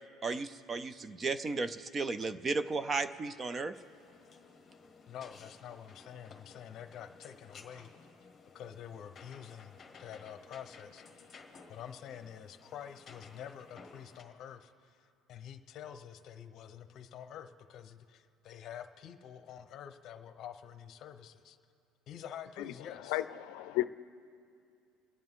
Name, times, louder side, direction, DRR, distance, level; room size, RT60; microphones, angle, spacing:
voice 1, 0.2-3.7, right 3 dB, 20° right, 12 dB, 0.5 m, -34 dB
sound 1, 3.7-14.2, left 4 dB, 20° left, 1.6 m, -56 dB
voice 2, 5.1-7.9 8.5-11.3 11.7-21.6 22.1-23.2, left 9 dB, 45° left, 9 dB, 0.9 m, -48 dB
voice 3, 23.1-23.9, left 15 dB, 80° left, 13 dB, 0.4 m, -33 dB
30.0 x 10.5 x 3.7 m, 2.5 s
cardioid pair, 155°, 0 cm